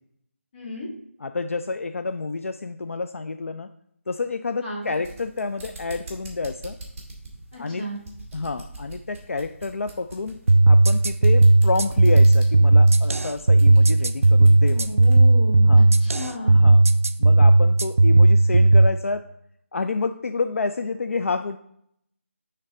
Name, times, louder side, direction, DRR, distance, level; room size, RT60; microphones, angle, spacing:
voice 1, 0.5-0.9 4.6-4.9 7.5-8.0 14.9-16.6, equal, 35° left, -5 dB, 2.0 m, -33 dB
voice 2, 1.2-3.7 4.1-6.8 7.5-7.8 8.3-15.0 15.7-15.8 16.4-16.8 17.2-19.3 19.7-21.6, left 3 dB, 75° left, 8 dB, 0.4 m, -29 dB
sound 1, 4.8-15.3, right 2 dB, 10° right, 1.1 m, -43 dB
sound 2, 10.5-18.9, right 2 dB, 80° right, 0.4 m, -15 dB
9.5 x 3.4 x 3.6 m, 0.71 s
figure-of-eight pair, 170°, 7 cm